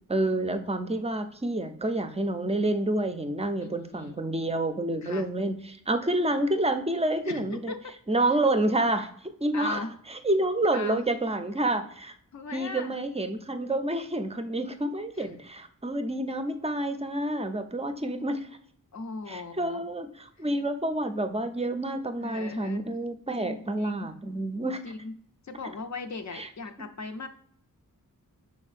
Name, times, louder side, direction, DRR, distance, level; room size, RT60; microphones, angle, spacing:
voice 1, 0.1-7.7 8.1-12.1 12.5-18.5 19.3-24.8 26.3-26.5, right 1 dB, 20° right, 8 dB, 0.5 m, -28 dB
voice 2, 3.6-4.2 5.0-5.3 7.2-8.0 9.5-9.9 10.7-11.0 12.3-12.9 15.2-15.4 18.9-19.8 22.2-23.0 23.4-24.1 24.8-25.1 25.4-27.3, left 4 dB, 55° left, 6 dB, 0.5 m, -38 dB
5.4 x 4.1 x 2.4 m, 0.64 s
wide cardioid pair, 95°, 34 cm